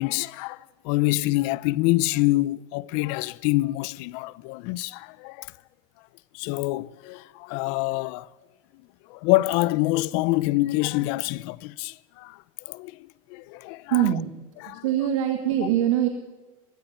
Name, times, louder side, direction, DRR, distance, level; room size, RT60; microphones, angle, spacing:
voice 1, 0.0-5.5 6.3-8.3 9.1-12.4 12.7-13.0 13.3-14.0 14.6-14.8, left 19 dB, 55° left, 0.6 m, -26 dB
voice 2, 13.9-14.3 14.7-16.1, right 11 dB, 85° right, 1.9 m, -23 dB
19.0 x 16.0 x 9.3 m
supercardioid pair, 150°, 17 cm